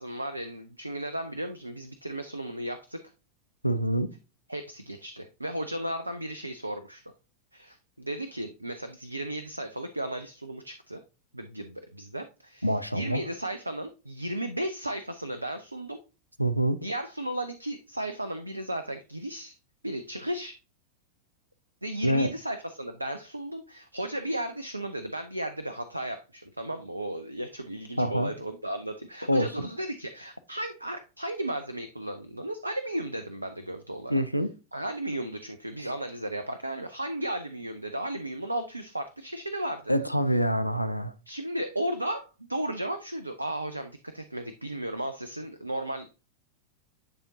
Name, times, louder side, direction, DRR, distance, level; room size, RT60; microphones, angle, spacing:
voice 1, 0.0-3.0 4.5-7.0 7.5-11.0 11.3-16.0 16.8-19.5 19.8-20.5 21.8-34.2 34.7-39.9 41.3-46.1, right 1 dB, 85° right, 0.5 m, -35 dB
voice 2, 3.6-4.1 12.6-13.2 16.4-16.8 22.0-22.3 28.0-28.3 29.3-29.7 34.1-34.5 35.8-35.9 39.9-41.1, equal, 90° left, 0.4 m, -26 dB
9.9 x 3.6 x 2.7 m
figure-of-eight pair, 90°, 0 cm